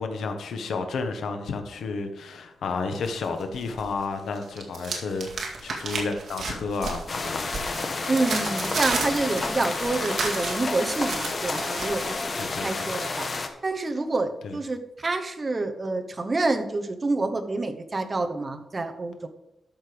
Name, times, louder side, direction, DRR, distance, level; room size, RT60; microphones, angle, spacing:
voice 1, 0.0-7.6 12.4-12.9 14.4-14.6, left 4 dB, 80° left, 6 dB, 1.3 m, -31 dB
sound 1, 3.0-3.9 4.2-12.0, right 4 dB, 55° right, 2.2 m, -33 dB
sound 2, 7.1-13.5, left 3 dB, 35° left, 1.1 m, -30 dB
voice 2, 8.1-13.3 13.6-19.3, right 2 dB, 25° right, 6 dB, 1.0 m, -28 dB
12.5 x 6.6 x 5.1 m, 0.89 s
wide cardioid pair, 175°, 0 cm